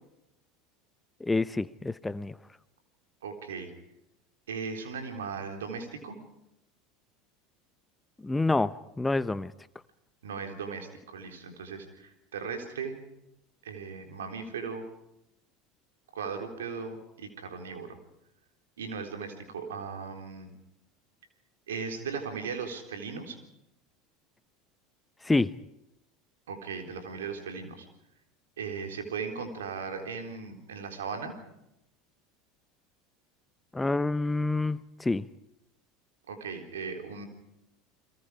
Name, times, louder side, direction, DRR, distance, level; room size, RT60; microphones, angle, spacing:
voice 1, 1.2-2.3 8.2-9.5 25.2-25.5 33.7-35.3, left 2 dB, 10° left, 17 dB, 0.8 m, -27 dB
voice 2, 3.2-3.7 4.5-6.2 10.2-13.0 13.6-14.9 16.1-18.0 18.8-20.5 21.7-23.4 26.5-27.9 28.6-31.3 36.3-37.3, right 5 dB, 75° right, 5 dB, 3.7 m, -37 dB
29.5 x 22.5 x 4.9 m, 0.86 s
figure-of-eight pair, 75°, 0 cm